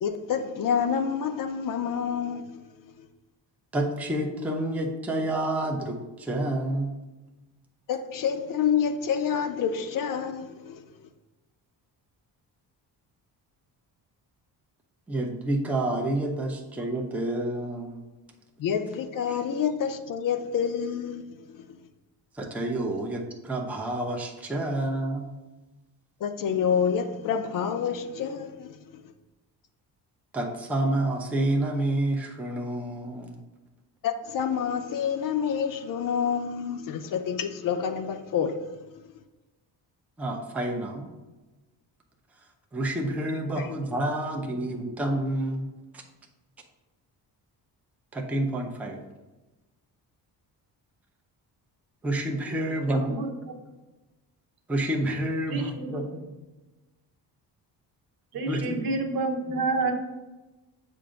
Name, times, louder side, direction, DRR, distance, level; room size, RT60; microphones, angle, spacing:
voice 1, 0.0-2.5 3.0-3.1 7.9-10.8 18.6-21.2 21.5-21.8 26.2-29.0 34.0-38.8 43.6-43.7, left 7 dB, 55° left, 0.5 m, -28 dB
voice 2, 3.7-7.0 15.1-18.0 19.3-19.4 22.3-25.3 30.3-33.4 40.2-41.1 42.7-45.7 45.9-46.0 48.1-49.0 52.0-53.2 54.7-56.3 58.4-58.8, right 1 dB, 5° right, 0.4 m, -29 dB
voice 3, 55.5-56.1 58.3-59.9, right 3 dB, 60° right, 0.9 m, -29 dB
7.4 x 2.5 x 5.0 m
cardioid pair, 160°, 40 cm